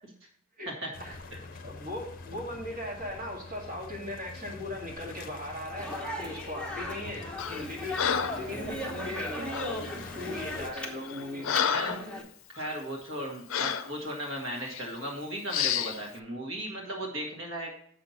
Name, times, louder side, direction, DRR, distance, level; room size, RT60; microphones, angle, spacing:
sound 1, 0.9-10.7, left 3 dB, 45° left, 0.7 m, -45 dB
voice 1, 1.6-11.7, left 1 dB, 40° right, -2 dB, 2.2 m, -38 dB
Speech, 5.8-12.2, left 1 dB, 5° left, 1.0 m, -38 dB
Breathing, 7.4-7.6 8.0-8.5 9.5-9.8 10.5-10.6 11.0-12.1 12.5-12.7 13.5-13.9 14.6-14.8 15.5-16.0, left 8 dB, 70° left, 0.5 m, -30 dB
voice 2, 8.3-8.8 9.9-10.4 11.7-12.0 12.6-17.7, right 1 dB, 65° right, 0 dB, 1.9 m, -37 dB
7.5 x 5.9 x 4.1 m, 0.63 s
head